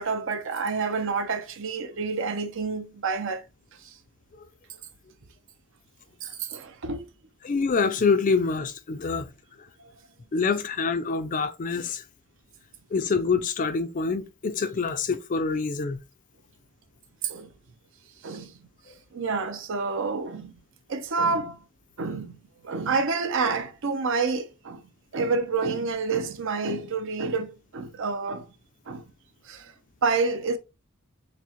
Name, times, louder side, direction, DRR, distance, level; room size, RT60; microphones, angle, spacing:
voice 1, 0.0-3.4 6.5-7.1 17.2-17.5 18.2-18.5 19.1-20.5 20.9-21.6 22.0-22.4 22.6-24.8 25.1-28.4 28.9-29.0 29.5-29.6 30.0-30.6, right 4 dB, 60° right, 0.5 m, -28 dB
voice 2, 7.4-9.3 10.3-12.0 12.9-16.0, left 4 dB, 35° left, 0.4 m, -26 dB
5.9 x 2.1 x 2.9 m
head